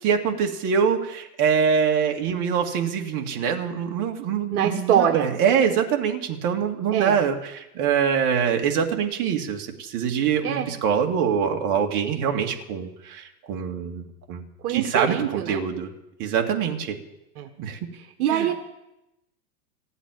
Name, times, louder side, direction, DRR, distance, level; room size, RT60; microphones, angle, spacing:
voice 1, 0.0-15.9 16.2-17.0 17.6-17.8 18.3-18.5, right 7 dB, 40° right, 2 dB, 2.3 m, -24 dB
voice 2, 4.5-5.3 6.9-7.2 10.4-10.7 14.6-15.6 17.4-17.5 18.2-18.5, right 9 dB, 65° right, 5 dB, 1.8 m, -23 dB
15.5 x 8.2 x 9.8 m, 0.90 s
hypercardioid pair, 125°, 47 cm